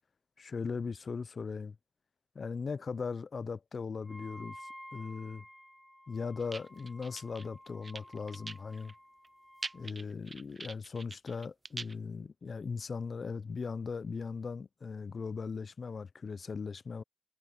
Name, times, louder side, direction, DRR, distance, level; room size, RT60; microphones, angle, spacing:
voice 1, 0.4-1.8 2.4-5.5 6.1-8.9 9.7-17.0, left 5 dB, 55° left, 0.4 m, -39 dB
Wind instrument woodwind instrument, 4.0-9.9, equal, 5° left, 1.2 m, -52 dB
sound 1, 6.4-7.5 7.8-8.9 9.2-9.3 9.6-11.9, right 3 dB, 35° right, 0.5 m, -43 dB
wide cardioid pair, 120°, 0 cm